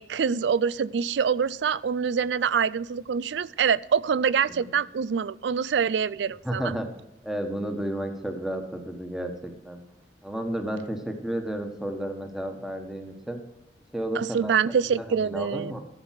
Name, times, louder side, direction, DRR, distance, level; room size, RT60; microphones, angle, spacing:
voice 1, 0.0-6.7 14.1-15.8, right 6 dB, 75° right, 21 dB, 0.4 m, -25 dB
voice 2, 6.4-6.9 7.2-9.8 10.2-13.4 13.9-14.6 14.9-15.8, right 1 dB, ahead, 5 dB, 1.4 m, -32 dB
12.0 x 7.8 x 5.8 m, 0.94 s
head